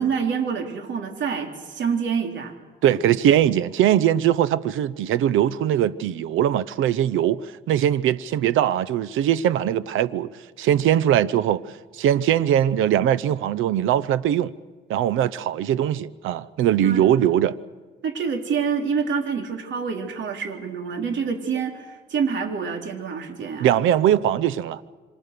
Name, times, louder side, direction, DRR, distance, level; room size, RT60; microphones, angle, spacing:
voice 1, 0.0-2.5 2.8-3.0 16.8-17.0 18.0-23.7, right 6 dB, 65° right, 3.6 m, -27 dB
voice 2, 2.8-10.3 10.6-11.6 11.9-14.5 14.9-17.6 23.6-24.8, right 11 dB, 85° right, 0.8 m, -21 dB
27.5 x 25.0 x 6.8 m
cardioid pair, 90°, 20 cm